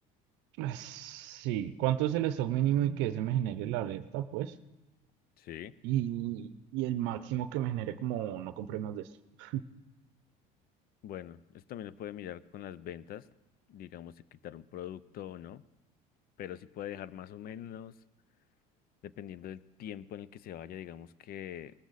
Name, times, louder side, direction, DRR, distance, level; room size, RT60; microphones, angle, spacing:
voice 1, 0.6-4.5 5.8-9.1 9.4-9.6, right 12 dB, 75° right, 12 dB, 0.6 m, -32 dB
voice 2, 5.4-5.7 11.0-13.3 13.7-15.6 16.4-17.9 19.0-21.7, left 11 dB, 55° left, 19 dB, 0.6 m, -43 dB
19.5 x 14.5 x 4.1 m, 1.1 s
supercardioid pair, 95°, 18 cm